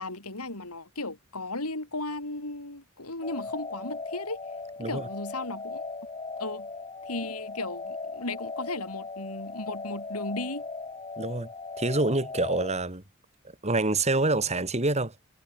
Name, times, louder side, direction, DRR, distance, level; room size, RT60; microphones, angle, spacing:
voice 1, 0.0-4.4 4.8-5.8 6.4-6.7 7.1-10.7, left 2 dB, 90° left, 7.5 m, -35 dB
sound 1, 3.2-12.8, left 3 dB, 25° left, 3.5 m, -38 dB
voice 2, 11.2-11.5 11.8-13.0 13.6-15.1, right 2 dB, 30° right, 3.4 m, -26 dB
head